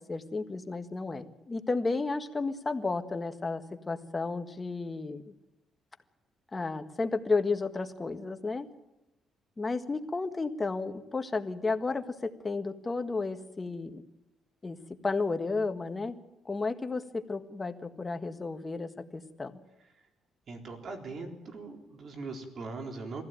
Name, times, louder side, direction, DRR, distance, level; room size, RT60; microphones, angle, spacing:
voice 1, 0.0-5.3 6.5-8.7 9.6-14.0 14.6-14.8 15.0-16.2 16.4-19.5, left 3 dB, 25° left, 8 dB, 1.6 m, -32 dB
voice 2, 20.5-23.2, right 3 dB, 55° right, 4 dB, 3.9 m, -40 dB
21.5 x 15.5 x 9.1 m, 0.94 s
cardioid pair, 90°, 0 cm